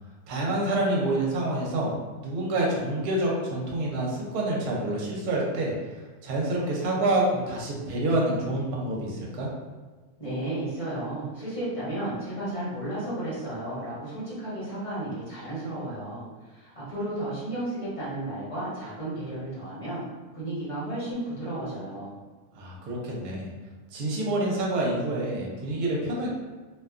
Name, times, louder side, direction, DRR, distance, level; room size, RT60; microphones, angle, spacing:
voice 1, 0.3-1.9 2.2-5.7 6.2-9.5 22.5-23.5 23.9-26.3, right 1 dB, 70° right, -3 dB, 1.1 m, -27 dB
voice 2, 10.2-20.0 20.3-22.2, right 1 dB, 25° left, -11 dB, 0.8 m, -33 dB
2.8 x 2.2 x 2.4 m, 1.3 s
omnidirectional pair, 1.8 m